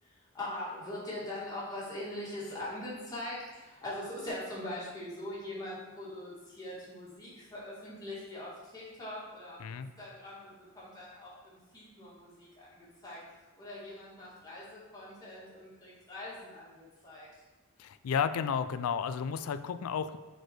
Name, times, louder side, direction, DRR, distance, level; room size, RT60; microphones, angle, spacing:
voice 1, 0.0-13.2 13.6-17.3, left 1 dB, 15° left, -8 dB, 2.3 m, -42 dB
voice 2, 17.8-20.2, left 7 dB, 85° left, 12 dB, 0.4 m, -32 dB
6.5 x 4.6 x 4.7 m, 1.2 s
head